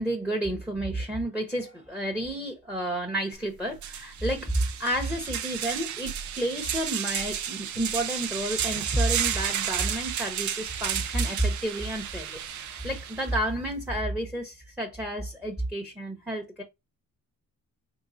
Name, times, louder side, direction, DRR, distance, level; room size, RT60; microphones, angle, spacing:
voice 1, 0.0-16.6, right 1 dB, 5° right, 0.9 m, -30 dB
sound 1, 3.3-3.4 3.8-13.3, right 9 dB, 75° right, 0.7 m, -32 dB
3.7 x 3.6 x 2.6 m
cardioid pair, 90°, 30 cm